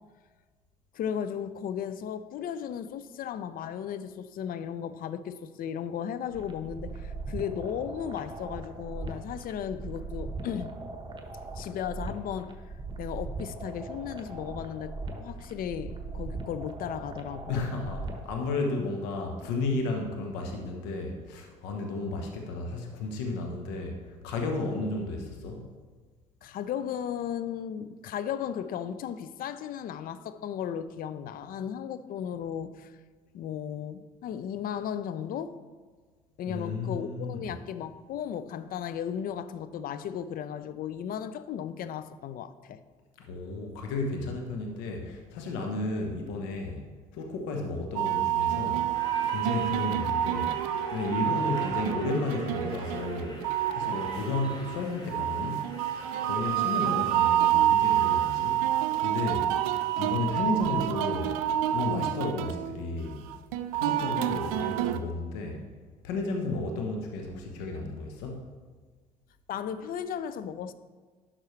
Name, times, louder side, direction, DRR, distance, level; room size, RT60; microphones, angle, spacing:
voice 1, 0.9-10.7 11.6-12.6 13.0-17.7 26.4-32.9 33.3-35.6 36.4-42.8 61.9-62.2 69.5-70.7, left 9 dB, 50° left, 0.5 m, -35 dB
sound 1, 6.3-18.4, right 3 dB, 25° right, 1.2 m, -39 dB
voice 2, 17.5-24.0 24.2-25.7 36.5-37.4 43.2-46.8 47.1-48.9 49.3-50.6 50.9-53.5 53.7-55.7 56.2-59.5 60.0-61.4 61.7-63.2 63.7-65.6 66.0-68.5, left 2 dB, 70° left, 1.1 m, -33 dB
sound 2, 48.0-65.0, right 12 dB, 75° right, 0.5 m, -28 dB
sound 3, 48.9-58.7, left 1 dB, 25° left, 1.7 m, -47 dB
11.0 x 6.0 x 3.2 m
hypercardioid pair, 55°, 19 cm